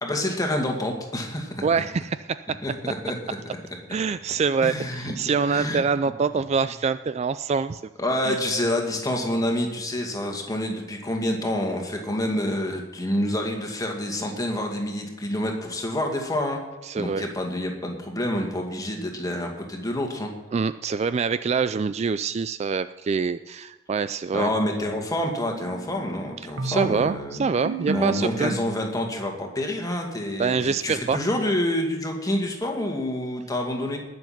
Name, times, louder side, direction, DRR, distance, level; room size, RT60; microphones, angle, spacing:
voice 1, 0.0-1.6 2.6-3.2 4.6-5.1 5.5-5.8 8.0-16.6 17.0-20.3 24.3-27.5 27.9-34.0, left 1 dB, 20° left, 2 dB, 2.1 m, -27 dB
voice 2, 1.6-2.6 3.9-7.8 8.2-8.4 16.8-17.3 20.5-24.5 26.6-28.6 30.4-31.2, right 5 dB, 35° right, 13 dB, 0.3 m, -25 dB
sound 1, 25.5-29.1, right 2 dB, 85° right, 1.6 m, -33 dB
20.0 x 7.1 x 5.9 m, 1.2 s
head